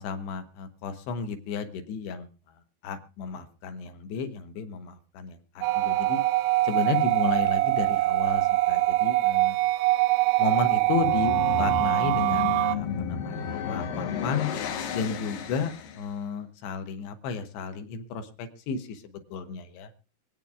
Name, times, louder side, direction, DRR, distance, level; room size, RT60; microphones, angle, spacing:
voice 1, 0.0-2.3 2.8-6.2 6.6-9.6 10.4-14.5 14.9-19.9, left 6 dB, 70° left, 7 dB, 2.7 m, -33 dB
sound 1, 5.6-12.8, right 19 dB, 85° right, 3.3 m, -23 dB
sound 2, 10.7-16.1, left 7 dB, 85° left, 1.9 m, -33 dB
25.0 x 9.0 x 2.4 m, 0.37 s
omnidirectional pair, 5.9 m